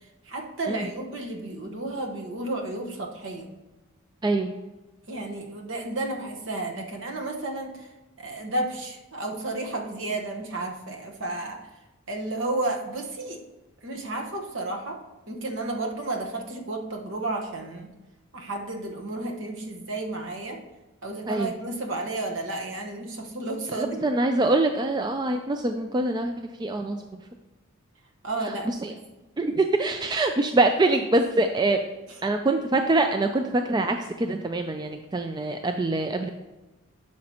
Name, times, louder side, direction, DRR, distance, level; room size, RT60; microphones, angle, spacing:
voice 1, 0.2-3.5 5.1-7.9 8.2-11.6 12.1-13.4 13.8-17.9 18.3-20.6 21.0-24.0 28.2-29.0, right 2 dB, 60° right, 2 dB, 1.2 m, -32 dB
voice 2, 4.2-4.5 21.3-21.5 23.7-26.3 26.6-27.0 28.5-28.9 29.4-31.8 32.2-36.3, right 2 dB, 20° right, 6 dB, 0.3 m, -24 dB
11.5 x 6.3 x 2.9 m, 1.1 s
head